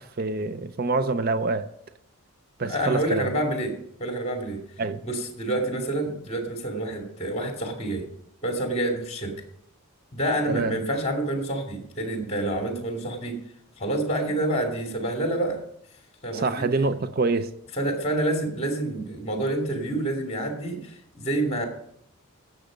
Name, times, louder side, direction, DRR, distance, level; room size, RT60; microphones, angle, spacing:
voice 1, 0.0-1.7 2.6-3.3 4.8-5.0 10.5-10.8 16.3-17.5, right 3 dB, 45° right, 0.6 m, -26 dB
voice 2, 2.6-3.7 4.0-4.6 5.0-8.1 8.4-9.3 10.1-13.4 13.8-15.6 16.2-16.6 17.8-21.7, right 1 dB, 30° left, 2.5 m, -28 dB
15.5 x 7.0 x 5.2 m
head